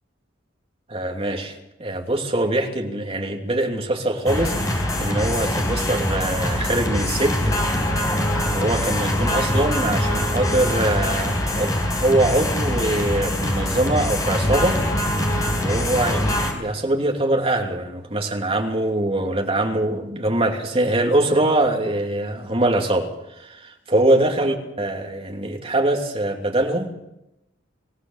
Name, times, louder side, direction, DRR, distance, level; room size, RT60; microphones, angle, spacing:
voice 1, 0.9-7.4 8.5-14.8 15.3-16.2 16.5-23.1 23.4-26.9, right 1 dB, 30° right, 2 dB, 2.8 m, -23 dB
sound 1, 4.3-16.5, left 1 dB, 20° left, 4.3 m, -23 dB
25.5 x 15.5 x 7.3 m, 0.89 s
head